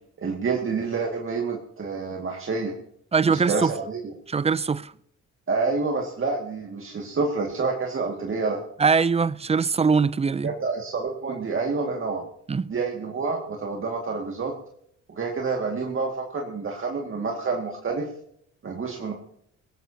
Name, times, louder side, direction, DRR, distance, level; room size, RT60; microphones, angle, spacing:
voice 1, 0.2-2.7 3.3-4.0 5.5-8.6 10.4-12.2 12.7-14.5 15.1-18.1 18.6-19.1, right 4 dB, 45° right, 2.2 m, -28 dB
voice 2, 3.1-3.7 4.3-4.9 8.8-10.5 12.5-12.7, right 5 dB, 20° right, 0.4 m, -22 dB
20.0 x 16.5 x 2.9 m
cardioid pair, 90°, 30 cm